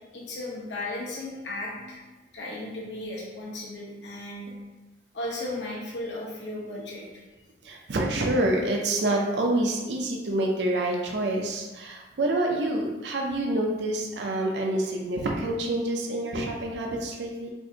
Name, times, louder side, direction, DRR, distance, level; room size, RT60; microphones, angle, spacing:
voice 1, 0.1-2.0 2.3-4.5 5.1-7.0, left 1 dB, 75° left, -4 dB, 1.0 m, -35 dB
voice 2, 7.6-17.5, right 1 dB, 70° right, 0 dB, 0.5 m, -27 dB
4.5 x 2.5 x 2.7 m, 1.2 s
head